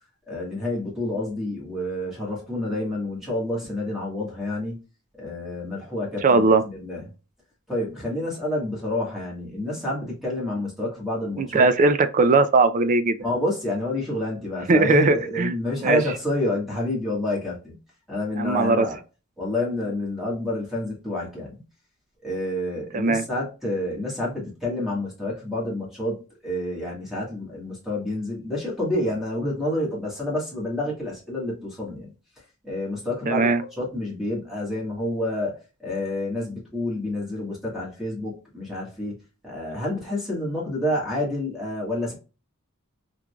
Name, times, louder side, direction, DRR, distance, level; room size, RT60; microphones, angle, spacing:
voice 1, 0.3-4.8 5.1-7.0 7.7-11.7 13.2-17.8 18.1-19.0 19.4-21.6 22.2-32.1 32.6-39.2 39.4-42.1, left 1 dB, ahead, 1.4 m, -28 dB
voice 2, 6.2-6.6 11.4-13.2 14.7-15.5 15.8-16.0 18.4-18.9 22.9-23.2 33.3-33.6, right 3 dB, 35° right, 0.4 m, -19 dB
3.7 x 3.1 x 2.2 m
head